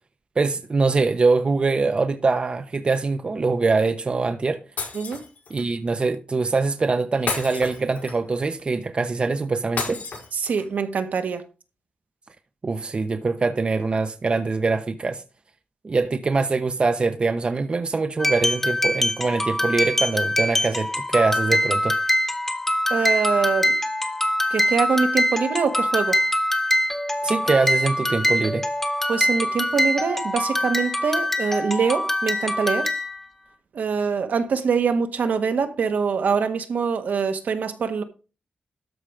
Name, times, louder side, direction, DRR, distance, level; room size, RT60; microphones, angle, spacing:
voice 1, 0.4-4.6 5.5-10.0 12.6-15.2 15.8-21.9 27.2-28.6, right 4 dB, 40° right, 0.9 m, -23 dB
Shatter, 4.8-5.7 7.3-8.4 9.8-10.8, left 4 dB, 80° left, 6.7 m, -31 dB
voice 2, 10.3-11.4 22.9-23.7 24.5-26.2 29.1-32.9 33.7-38.0, right 5 dB, 70° right, 1.5 m, -24 dB
sound 1, 18.2-33.3, left 1 dB, 10° left, 1.5 m, -23 dB
13.0 x 5.1 x 5.0 m
wide cardioid pair, 105°, 3 cm